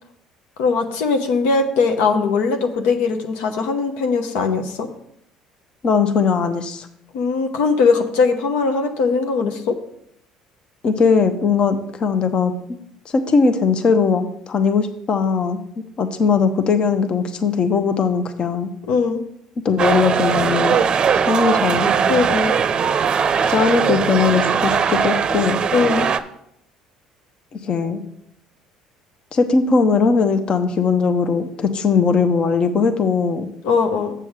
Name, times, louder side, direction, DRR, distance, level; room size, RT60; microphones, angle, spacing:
voice 1, 0.6-4.9 7.1-9.8 18.9-19.2 22.1-22.5 25.7-26.1 33.6-34.1, left 4 dB, 80° left, 5 dB, 0.9 m, -20 dB
voice 2, 5.8-6.9 10.8-12.5 13.1-15.6 16.0-18.7 19.6-20.8 21.3-21.9 23.5-25.6 27.5-28.0 29.3-33.5, left 5 dB, 45° left, 8 dB, 0.9 m, -19 dB
sound 1, 19.8-26.2, right 6 dB, 40° right, 0.6 m, -19 dB
7.0 x 6.9 x 4.8 m, 0.74 s
supercardioid pair, 85°, 2 cm